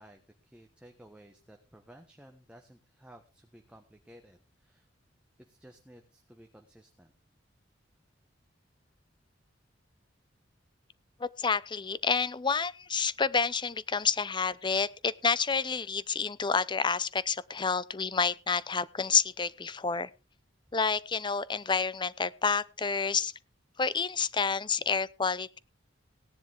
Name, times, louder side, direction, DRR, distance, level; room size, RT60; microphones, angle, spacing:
voice 1, 0.0-4.9 5.4-7.1, right 1 dB, 5° right, 3 dB, 1.3 m, -55 dB
voice 2, 11.2-20.1 20.7-23.3 23.8-25.6, left 5 dB, 25° left, 18 dB, 0.6 m, -29 dB
17.5 x 10.5 x 3.5 m, 0.31 s
head